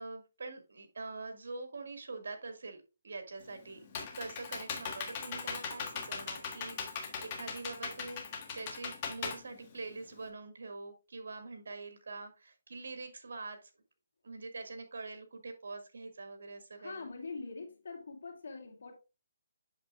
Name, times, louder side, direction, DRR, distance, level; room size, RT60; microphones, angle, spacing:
voice 1, 0.0-3.8 4.1-13.7 14.2-17.1, right 3 dB, 75° right, 1.8 m, -44 dB
Computer keyboard, 3.4-10.3, left 6 dB, 30° left, 1.5 m, -40 dB
voice 2, 16.8-18.9, left 4 dB, 70° left, 2.3 m, -44 dB
7.9 x 6.7 x 2.4 m
hypercardioid pair, 170°, 0 cm